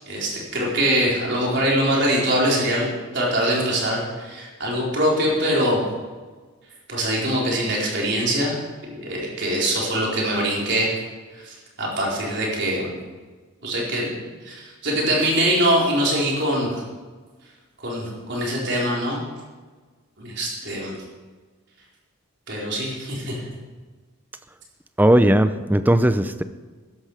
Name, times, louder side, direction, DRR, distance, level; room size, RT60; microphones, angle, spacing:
voice 1, 0.0-2.9 3.1-5.8 6.9-11.0 11.4-13.0 13.6-16.7 17.8-19.2 20.2-20.9 22.5-23.4, right 1 dB, 50° right, -4 dB, 4.5 m, -23 dB
voice 2, 25.0-26.4, right 1 dB, 10° right, 11 dB, 0.5 m, -17 dB
15.0 x 12.5 x 4.9 m, 1.4 s
head